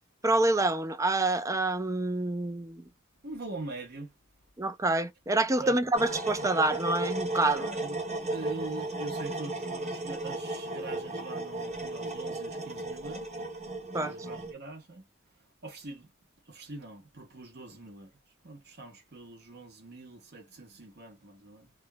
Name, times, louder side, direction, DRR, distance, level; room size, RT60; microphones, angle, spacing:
voice 1, 0.2-2.8 4.6-7.7 13.9-14.1, right 2 dB, 15° right, 0.4 m, -27 dB
voice 2, 3.2-4.1 5.6-5.8 7.5-13.3 14.0-15.1 15.6-16.1 16.5-18.1 18.4-21.7, right 2 dB, 50° right, 1.1 m, -43 dB
sound 1, 5.9-14.5, right 2 dB, 35° right, 1.4 m, -35 dB
3.4 x 2.2 x 2.2 m
head